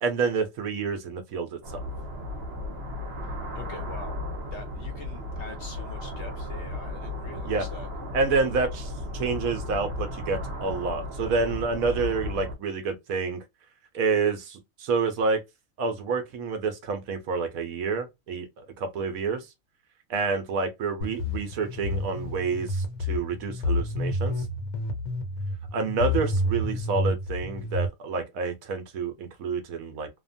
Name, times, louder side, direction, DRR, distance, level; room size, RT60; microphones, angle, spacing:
voice 1, 0.0-1.8 7.4-7.6 8.1-13.4 13.9-15.4 15.8-19.5 20.1-24.4 25.7-30.1, right 4 dB, 70° right, 1.1 m, -28 dB
sound 1, 1.6-12.5, left 1 dB, 50° right, 1.0 m, -35 dB
voice 2, 3.2-4.2 4.5-7.9, left 3 dB, 60° left, 0.8 m, -44 dB
sound 2, 21.0-27.9, left 1 dB, 85° left, 1.3 m, -29 dB
2.8 x 2.1 x 2.5 m
omnidirectional pair, 1.6 m